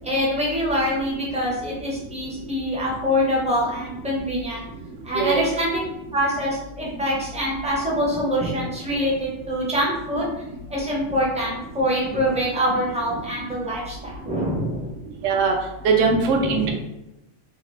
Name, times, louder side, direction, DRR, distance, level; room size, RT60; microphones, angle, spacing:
voice 1, 0.0-4.6 5.0-5.8 6.1-10.3 10.7-14.9 16.1-16.7, equal, 10° right, -5 dB, 0.3 m, -25 dB
voice 2, 5.1-5.5 15.2-15.5 15.8-16.7, right 4 dB, 70° right, 2 dB, 0.9 m, -20 dB
2.8 x 2.3 x 3.0 m, 0.92 s
omnidirectional pair, 1.4 m